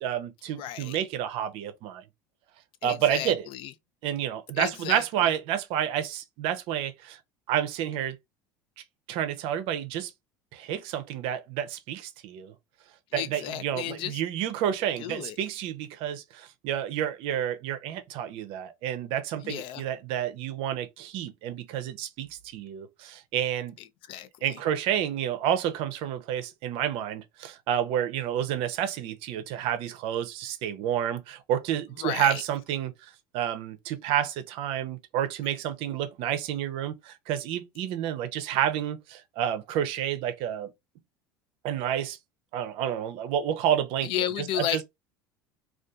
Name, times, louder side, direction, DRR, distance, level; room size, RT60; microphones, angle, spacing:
voice 1, 0.0-2.0 2.8-3.5 4.0-7.2 7.5-8.2 9.1-10.1 10.5-12.5 13.1-23.8 24.4-32.9 33.3-40.7 41.6-42.2 42.5-44.1 44.4-44.8, right 10 dB, 60° right, 0.5 m, -29 dB
voice 2, 0.6-1.0 2.8-3.7 4.5-5.3 13.1-14.2 15.0-15.4 19.4-19.8 24.1-24.6 32.0-32.4 44.0-44.8, left 11 dB, 55° left, 0.4 m, -33 dB
2.5 x 2.3 x 2.3 m
hypercardioid pair, 75°, 11 cm